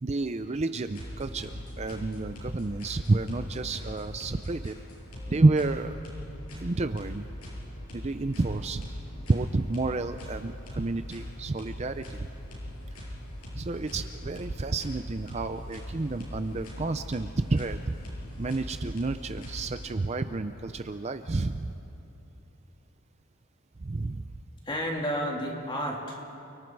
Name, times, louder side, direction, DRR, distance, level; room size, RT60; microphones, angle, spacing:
voice 1, 0.0-4.8 5.3-5.9 6.6-7.2 7.9-8.8 9.3-12.3 13.5-17.9 18.4-21.7 23.8-24.3, right 2 dB, 30° right, 9 dB, 0.5 m, -29 dB
sound 1, 0.8-20.3, equal, 85° left, 7.6 m, -41 dB
voice 2, 24.6-26.4, equal, 20° left, -1 dB, 3.0 m, -31 dB
29.5 x 24.0 x 4.7 m, 2.9 s
head